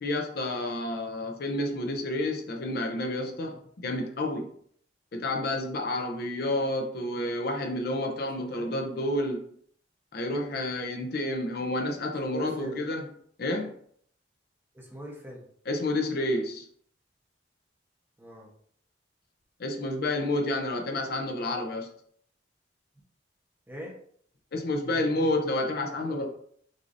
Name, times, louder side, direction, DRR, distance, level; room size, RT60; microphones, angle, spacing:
voice 1, 0.0-4.5 5.1-9.4 10.1-13.0 13.4-13.7 15.7-16.7 19.6-21.9 24.5-26.3, left 1 dB, 55° left, 2 dB, 0.6 m, -30 dB
voice 2, 8.4-8.8 12.3-12.8 14.7-15.5 18.2-18.5 23.7-24.0, equal, 10° right, -2 dB, 0.9 m, -41 dB
6.3 x 2.7 x 2.6 m, 0.62 s
head